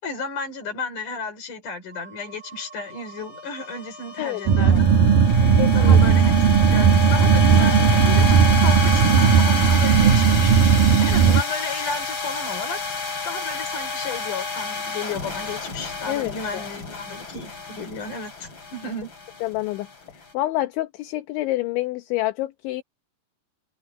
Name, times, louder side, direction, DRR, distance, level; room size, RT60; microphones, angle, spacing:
voice 1, 0.0-4.9 5.7-10.5 11.1-12.8 13.2-19.1, left 4 dB, 40° left, 6.1 m, -33 dB
sound 1, 1.9-20.2, left 4 dB, 25° left, 5.0 m, -30 dB
voice 2, 4.2-4.8 5.6-6.0 16.1-16.7 19.4-19.9 20.1-22.8, left 16 dB, 75° left, 3.4 m, -28 dB
sound 2, 4.5-11.4, right 7 dB, 65° right, 2.4 m, -16 dB
omnidirectional pair, 5.6 m